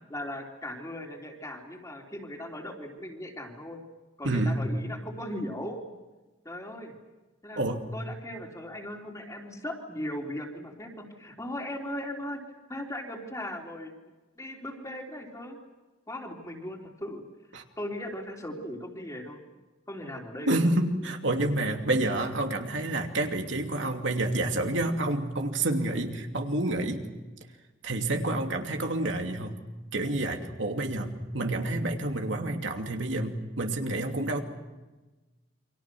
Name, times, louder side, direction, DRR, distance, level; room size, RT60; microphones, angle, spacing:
voice 1, 0.1-3.8 4.2-5.8 6.4-6.9 7.4-7.6 7.9-12.4 12.7-13.9 14.4-15.6 16.1-17.2 17.8-19.4 19.9-20.7, left 1 dB, 15° left, 0 dB, 3.7 m, -38 dB
voice 2, 4.2-4.7 7.6-7.8 17.5-17.6 20.5-27.0 27.8-29.5 29.9-34.4, right 2 dB, 70° right, 3 dB, 2.8 m, -28 dB
29.0 x 25.5 x 6.3 m, 1.2 s
head